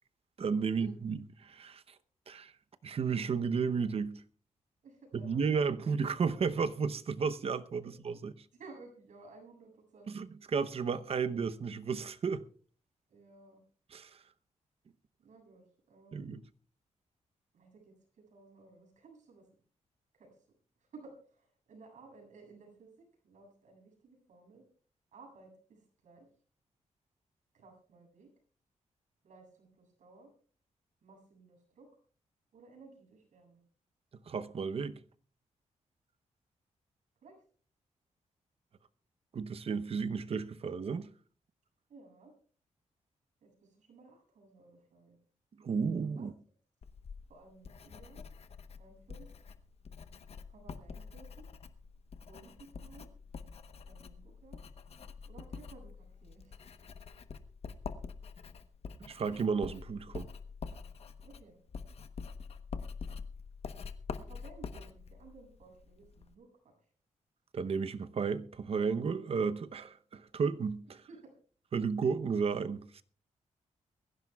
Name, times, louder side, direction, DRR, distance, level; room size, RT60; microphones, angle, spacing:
voice 1, 0.4-1.8 2.3-2.5 2.8-4.2 5.1-8.3 10.1-12.4 13.9-14.1 16.1-16.4 34.3-35.0 39.3-41.1 45.6-46.3 59.0-60.3 67.5-71.0 71.7-73.0, right 5 dB, 50° right, 0.8 m, -33 dB
voice 2, 4.8-5.7 7.8-7.9 8.5-10.1 13.1-13.6 15.2-16.3 17.5-19.5 20.1-20.4 20.8-24.6 25.1-26.3 27.5-28.3 29.2-30.3 31.0-31.9 32.5-33.6 37.2-37.4 41.9-42.3 43.4-45.2 46.2-46.3 47.3-48.3 48.8-49.3 50.5-51.5 52.2-53.1 53.8-54.6 55.3-56.6 61.2-61.6 64.1-66.5 71.1-71.3, right 3 dB, 80° right, 7.4 m, -56 dB
Writing, 46.8-66.3, left 5 dB, 55° left, 1.0 m, -46 dB
23.0 x 15.0 x 2.3 m
wide cardioid pair, 120°, 13 cm